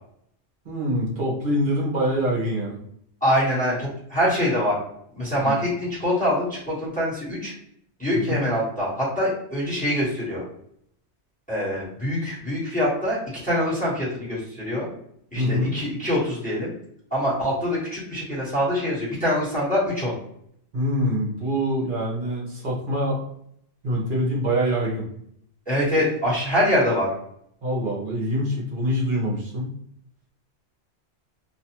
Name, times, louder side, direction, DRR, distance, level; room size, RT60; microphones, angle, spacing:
voice 1, 0.6-2.8 5.3-5.6 8.1-8.4 15.4-15.7 20.7-23.2 23.8-25.1 26.0-26.1 27.6-29.7, equal, 50° right, -4 dB, 0.9 m, -25 dB
voice 2, 3.2-4.8 5.1-7.5 8.0-10.4 11.5-14.9 15.3-16.7 17.1-20.1 25.7-27.1, equal, 5° left, -8 dB, 1.2 m, -24 dB
2.6 x 2.4 x 2.9 m, 0.71 s
omnidirectional pair, 1.2 m